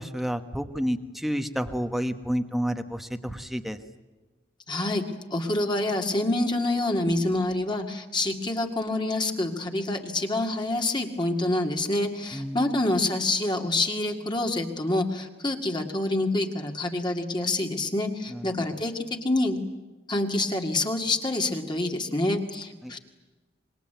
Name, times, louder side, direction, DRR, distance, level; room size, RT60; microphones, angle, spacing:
voice 1, 0.0-3.8 12.3-12.8 18.3-18.4 22.8-22.9, equal, ahead, 7 dB, 1.3 m, -30 dB
voice 2, 4.7-5.0 5.3-19.6 20.1-23.0, left 2 dB, 25° left, 3 dB, 2.0 m, -27 dB
26.0 x 21.5 x 9.2 m, 1.2 s
head